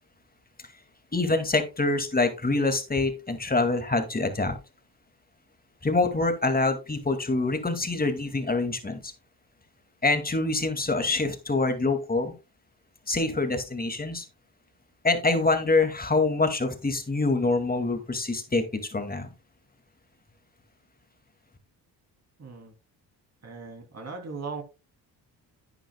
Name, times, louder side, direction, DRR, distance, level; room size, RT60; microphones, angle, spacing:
voice 1, 1.1-4.6 5.8-9.1 10.0-12.3 13.1-14.3 15.0-19.3, left 3 dB, 20° left, 7 dB, 2.3 m, -25 dB
voice 2, 22.4-22.7 23.4-24.6, right 4 dB, 35° right, 4 dB, 3.0 m, -38 dB
11.0 x 9.0 x 2.3 m, 0.29 s
cardioid pair, 75°, 42 cm